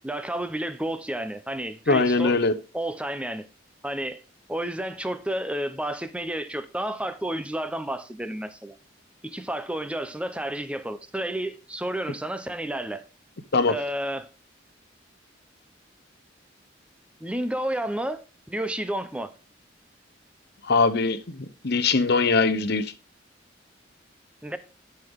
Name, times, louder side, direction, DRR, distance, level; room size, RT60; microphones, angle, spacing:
voice 1, 0.0-2.4 2.7-3.5 3.8-4.2 4.5-8.8 9.2-13.0 13.7-14.3 17.2-18.2 18.5-19.3 24.4-24.6, right 1 dB, 5° right, 0.7 m, -31 dB
voice 2, 1.9-2.5 13.5-13.8 20.7-21.4 21.6-22.9, left 3 dB, 60° left, 0.9 m, -21 dB
11.0 x 5.8 x 3.6 m
head